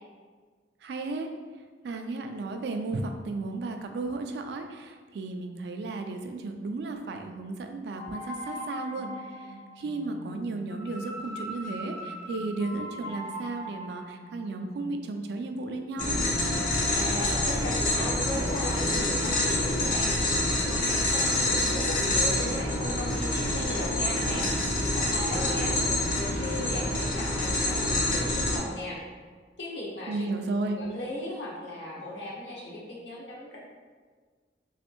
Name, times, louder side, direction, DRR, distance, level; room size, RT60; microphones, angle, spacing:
voice 1, 0.8-1.3 1.8-16.2 30.1-30.8, right 3 dB, 65° right, 5 dB, 0.3 m, -34 dB
sound 1, 8.0-20.7, left 1 dB, 20° left, 0.5 m, -41 dB
sound 2, 16.0-28.6, left 1 dB, 50° left, 0.7 m, -27 dB
voice 2, 16.9-29.0 29.6-30.2 30.6-33.6, left 1 dB, 90° left, -5 dB, 0.9 m, -37 dB
3.2 x 2.5 x 2.9 m, 1.5 s
head